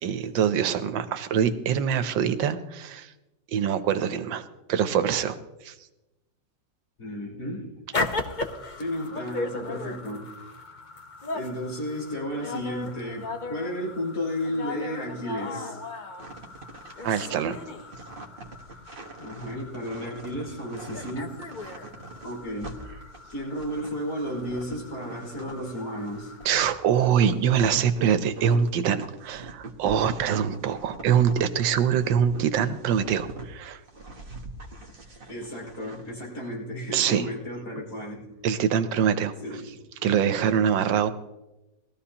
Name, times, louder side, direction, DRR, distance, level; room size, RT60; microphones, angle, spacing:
voice 1, 0.0-3.1 3.5-5.4 5.6-5.7 17.0-17.6 26.4-33.8 36.9-37.3 38.4-39.3 40.0-41.1, right 8 dB, 90° right, 11 dB, 1.5 m, -24 dB
voice 2, 7.0-7.9 8.8-10.3 11.3-15.8 19.2-21.6 22.2-22.7 23.3-26.3 35.3-38.3 39.4-39.8, equal, 60° left, -4 dB, 5.9 m, -33 dB
sound 1, 7.9-26.7, left 3 dB, 35° left, 0.8 m, -37 dB
sound 2, 16.2-25.7 26.0-33.5 33.9-36.1, right 3 dB, 35° right, 1.3 m, -43 dB
19.5 x 14.0 x 2.9 m, 1.0 s
omnidirectional pair, 2.0 m